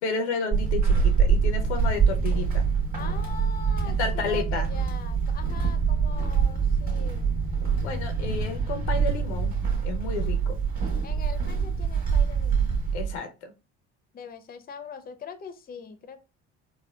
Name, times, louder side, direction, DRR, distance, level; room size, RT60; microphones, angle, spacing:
voice 1, 0.0-2.6 4.0-4.7 7.8-9.5 9.8-10.6 12.9-13.5, left 4 dB, 85° left, 6 dB, 0.7 m, -31 dB
Walk footsteps / Squeak, 0.5-13.2, right 6 dB, 25° right, 1.4 m, -25 dB
voice 2, 2.9-7.5 11.0-12.8 14.1-16.2, left 6 dB, 25° left, 10 dB, 0.6 m, -42 dB
4.4 x 2.1 x 2.2 m, 0.29 s
hypercardioid pair, 65°, 34 cm